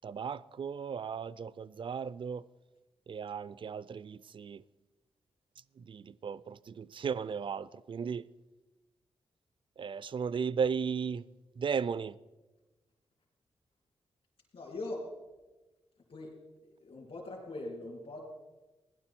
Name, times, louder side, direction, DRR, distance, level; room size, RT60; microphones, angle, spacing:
voice 1, 0.0-2.4 3.1-4.6 5.8-8.3 9.8-11.2 11.6-12.2, right 6 dB, 50° right, 0.4 m, -35 dB
voice 2, 14.5-15.1 16.1-18.3, left 2 dB, 65° left, 3.3 m, -42 dB
16.5 x 11.0 x 4.4 m
cardioid pair, 55°, 11 cm